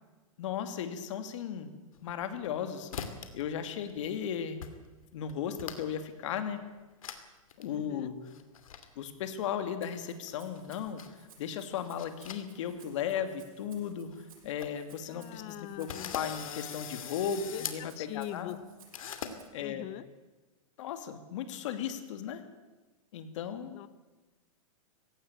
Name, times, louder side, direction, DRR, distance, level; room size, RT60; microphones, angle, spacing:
voice 1, 0.4-1.7 2.0-4.6 5.1-6.6 7.6-8.2 9.0-11.0 11.4-14.1 14.4-18.7 19.5-19.8 20.8-22.4 23.1-23.8, left 8 dB, 65° left, 8 dB, 2.7 m, -36 dB
sound 1, 2.0-2.6 2.9-3.4 3.7-4.2 4.6-4.7 5.0-6.0 6.4-6.5 7.0-7.2 7.5-7.6 8.3-8.9 10.1-11.2 11.7-12.8 13.1-13.2 13.8-13.9 14.1-14.2 14.4-14.7 15.2-15.3 15.9-17.8 18.9-19.3, left 8 dB, 80° left, 2.6 m, -41 dB
voice 2, 7.7-8.1 15.1-16.2 17.5-18.6 19.6-20.1 23.7-23.9, left 14 dB, 35° left, 15 dB, 1.2 m, -42 dB
Rattle (instrument), 9.8-19.4, right 6 dB, 80° right, 7.9 m, -60 dB
18.0 x 16.5 x 8.9 m, 1.2 s
hypercardioid pair, 140°, 17 cm